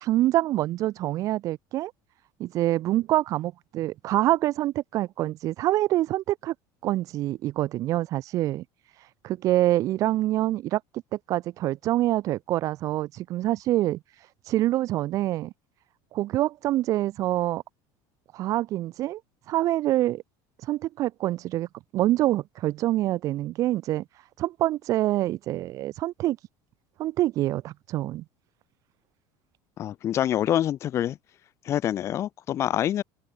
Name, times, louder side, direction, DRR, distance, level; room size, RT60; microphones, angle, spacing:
voice 1, 0.0-1.9 2.4-6.5 6.8-8.6 9.2-10.8 11.1-14.0 14.5-15.5 16.1-17.6 18.3-19.2 19.5-20.2 20.6-21.7 21.9-24.0 24.4-26.4 27.0-28.2, right 15 dB, 35° right, 0.5 m, -26 dB
voice 2, 29.8-31.2 31.6-33.0, left 11 dB, 30° left, 1.0 m, -26 dB
open air
cardioid pair, 175°, 10 cm